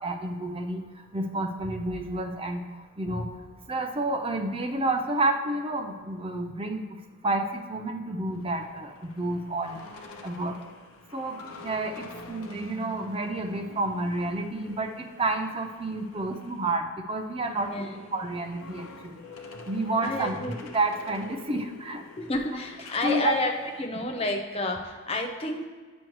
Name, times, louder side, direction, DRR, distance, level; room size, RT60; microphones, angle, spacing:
voice 1, 0.0-0.8 1.1-2.6 3.0-3.3 3.7-6.8 7.2-10.6 11.1-19.1 19.6-20.4 20.7-22.0 23.0-23.3, right 2 dB, 25° right, 4 dB, 0.5 m, -30 dB
sound 1, 8.3-16.7 17.0-23.9, left 2 dB, 80° left, 0.7 m, -46 dB
voice 2, 20.0-20.6 22.2-23.5 23.8-25.7, left 2 dB, 25° left, 3 dB, 0.6 m, -30 dB
9.1 x 6.2 x 3.1 m, 1.5 s
head